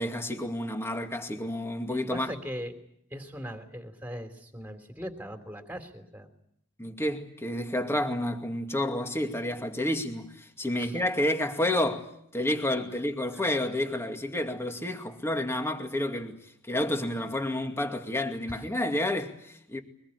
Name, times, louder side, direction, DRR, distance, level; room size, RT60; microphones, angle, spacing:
voice 1, 0.0-2.3 6.8-16.4 16.7-19.8, left 1 dB, 10° left, 2.3 m, -30 dB
voice 2, 1.9-2.7 3.1-6.3 10.7-11.0 13.3-13.4 18.5-18.6, equal, 10° right, 3.3 m, -40 dB
23.5 x 20.5 x 9.9 m
head